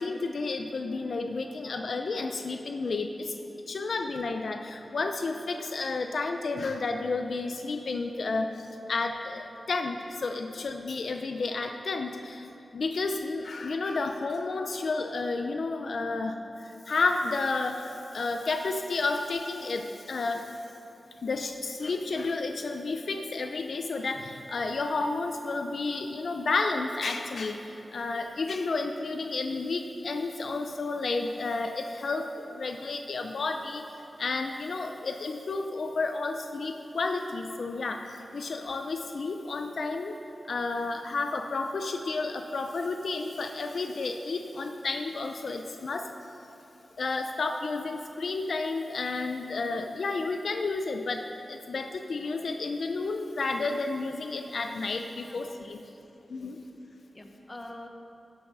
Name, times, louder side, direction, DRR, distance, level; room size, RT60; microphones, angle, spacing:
voice 1, 0.0-3.4 3.7-12.5 12.7-20.6 21.2-33.9 34.2-40.1 40.5-46.1 47.0-55.8 56.3-56.6, left 3 dB, 70° left, 5 dB, 0.5 m, -31 dB
voice 2, 55.2-56.0 56.4-56.5 57.1-57.9, left 1 dB, 25° left, 3 dB, 1.0 m, -46 dB
14.5 x 6.3 x 5.4 m, 2.9 s
wide cardioid pair, 95°, 0 cm